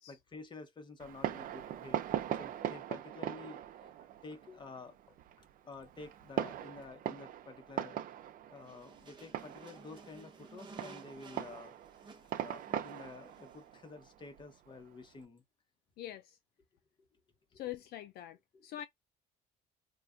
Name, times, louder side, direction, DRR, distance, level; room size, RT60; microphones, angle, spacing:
voice 1, 0.1-2.0 2.3-3.9 4.2-8.2 8.5-11.8 12.0-15.4 17.5-17.6 18.5-18.7, left 3 dB, 25° left, 0.9 m, -51 dB
Fireworks, 1.0-15.2, right 10 dB, 55° right, 0.5 m, -41 dB
sound 1, 8.6-13.7, right 4 dB, 25° right, 0.9 m, -55 dB
voice 2, 16.0-16.4 17.5-18.8, left 13 dB, 70° left, 0.4 m, -44 dB
2.4 x 2.2 x 3.6 m
cardioid pair, 110°, 17 cm